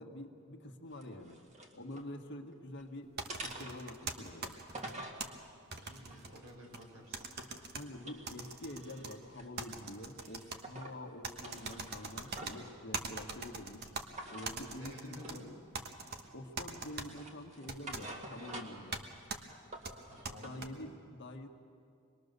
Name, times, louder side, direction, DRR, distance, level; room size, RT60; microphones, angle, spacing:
voice 1, 0.0-1.4 1.7-4.6 7.7-13.9 14.3-15.5 16.3-19.0 20.4-21.5, left 1 dB, 55° left, 3 dB, 1.7 m, -47 dB
sound 1, 0.9-2.1 2.5-2.9 3.3-5.2 5.8-7.6 8.0-9.8 10.2-11.0 11.3-12.7 14.1-14.6 15.2-15.4 15.8-16.5 16.9-18.9 19.3-20.6, right 1 dB, 35° right, 2.1 m, -48 dB
sound 2, 3.2-5.3 5.7-6.8 7.1-7.8 8.3-9.1 9.6-10.6 11.2-12.5 12.9-14.0 14.4-15.4 15.7-16.2 16.6-17.1 17.7-18.0 18.9-19.0 19.3-19.4 19.8-20.7, right 4 dB, 50° right, 1.4 m, -42 dB
voice 2, 5.7-7.3 14.8-15.5 20.1-20.7, equal, 70° right, -1 dB, 5.6 m, -52 dB
25.0 x 21.0 x 6.8 m, 2.3 s
head